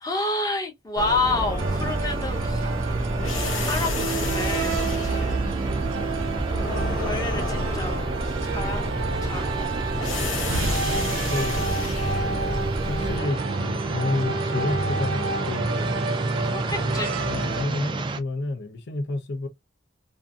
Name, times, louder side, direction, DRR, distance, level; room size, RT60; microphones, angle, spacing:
voice 1, 0.0-2.7 3.6-5.5 7.0-9.9 16.4-17.1, left 2 dB, 20° left, 0.7 m, -30 dB
sound 1, 1.0-13.2, left 1 dB, 85° left, 0.9 m, -31 dB
sound 2, 1.2-18.2, right 2 dB, 25° right, 0.3 m, -31 dB
sound 3, 1.6-17.6, right 3 dB, 85° right, 0.5 m, -29 dB
voice 2, 11.2-11.6 12.1-15.9 16.8-19.5, left 2 dB, 55° left, 0.5 m, -31 dB
2.5 x 2.5 x 2.3 m
head